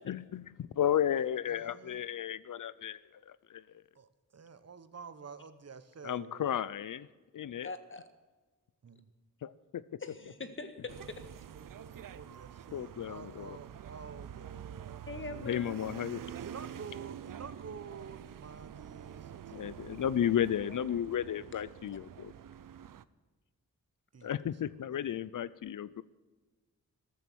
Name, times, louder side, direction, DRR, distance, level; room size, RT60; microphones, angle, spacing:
voice 1, 0.1-3.0 3.3-3.6 6.0-7.1 7.3-7.7 9.4-9.8 12.7-13.6 15.4-16.2 19.5-22.3 24.2-26.0, left 10 dB, 75° left, 18 dB, 0.5 m, -33 dB
voice 2, 1.5-2.0 3.9-6.6 8.8-9.1 10.2-10.5 11.2-15.5 16.4-19.7 24.1-24.4 24.9-25.0, right 5 dB, 50° right, 13 dB, 1.1 m, -49 dB
voice 3, 7.6-8.1 10.0-11.2 15.1-15.8, left 3 dB, 40° left, 9 dB, 1.6 m, -42 dB
sound 1, 10.9-23.0, right 9 dB, 85° right, 0.7 m, -47 dB
14.0 x 14.0 x 6.2 m, 1.3 s
wide cardioid pair, 105°, 32 cm